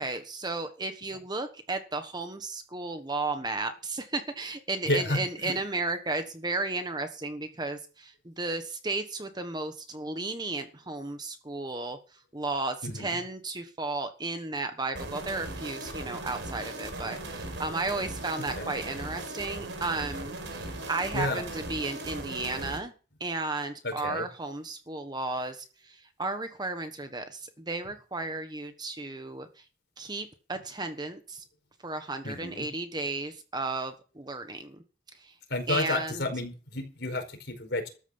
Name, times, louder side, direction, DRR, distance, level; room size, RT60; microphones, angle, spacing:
voice 1, 0.0-22.9 23.2-29.6 30.0-31.4 31.8-34.8 35.1-35.4 35.7-36.3, right 3 dB, 20° right, 7 dB, 1.3 m, -34 dB
voice 2, 4.9-5.5 12.8-13.2 18.6-18.7 21.1-21.4 23.8-24.3 32.2-32.7 35.5-37.9, left 2 dB, 60° left, 6 dB, 4.7 m, -31 dB
sound 1, 14.9-22.8, right 2 dB, 75° right, 5.1 m, -38 dB
13.5 x 9.1 x 7.1 m, 0.35 s
head